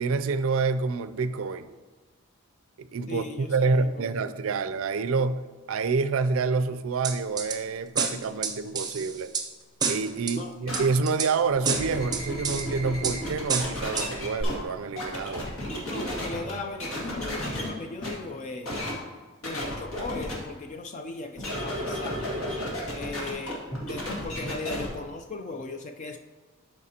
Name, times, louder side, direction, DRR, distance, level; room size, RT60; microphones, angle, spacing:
voice 1, 0.0-1.7 2.8-5.4 5.7-9.3 9.9-15.4, right 4 dB, 65° right, 12 dB, 0.4 m, -27 dB
voice 2, 3.1-4.1 10.3-10.5 15.8-18.7 19.4-22.4 22.9-23.6 23.9-26.2, left 3 dB, 35° left, 5 dB, 0.4 m, -37 dB
sound 1, 7.0-7.6 8.0-9.5 9.8-10.4 10.7-11.3 11.6-12.6 13.0-13.2 13.5-14.1 14.4-14.5, right 5 dB, 20° right, 0.6 m, -28 dB
sound 2, 10.7-10.8 11.5-14.5 15.0-16.5 16.8-17.7 18.0-18.1 18.6-18.9 19.4-20.3 21.4-24.9, equal, 70° left, 2.2 m, -33 dB
12.0 x 4.8 x 2.8 m, 1.4 s
head